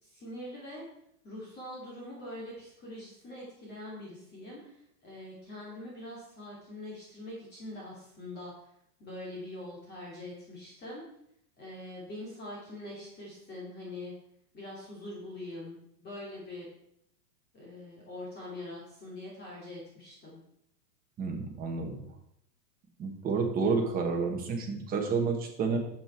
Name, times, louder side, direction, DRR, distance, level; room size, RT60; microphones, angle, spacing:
voice 1, 0.0-0.8 1.2-8.5 9.0-11.0 11.6-14.1 14.5-16.7 17.5-20.4, left 1 dB, 20° left, -5 dB, 2.8 m, -43 dB
voice 2, 21.2-22.0 23.0-25.8, right 4 dB, 20° right, 2 dB, 1.4 m, -30 dB
9.4 x 7.9 x 4.5 m, 0.75 s
supercardioid pair, 160°, 49 cm